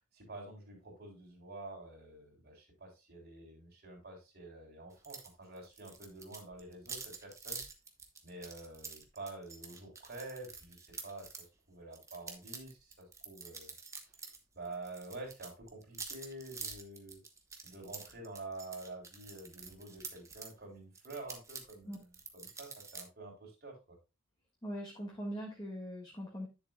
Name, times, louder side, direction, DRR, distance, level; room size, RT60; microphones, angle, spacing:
voice 1, 0.1-7.6 8.2-13.7 14.5-17.2 17.6-24.0, right 2 dB, 45° right, 0 dB, 3.5 m, -48 dB
sound 1, 5.0-5.3 5.6-11.5 11.9-14.4 14.6-20.5 20.9-23.0, right 5 dB, 15° right, 0.9 m, -47 dB
voice 2, 24.6-26.5, equal, 20° left, -2 dB, 1.6 m, -41 dB
10.5 x 6.9 x 2.3 m, 0.27 s
head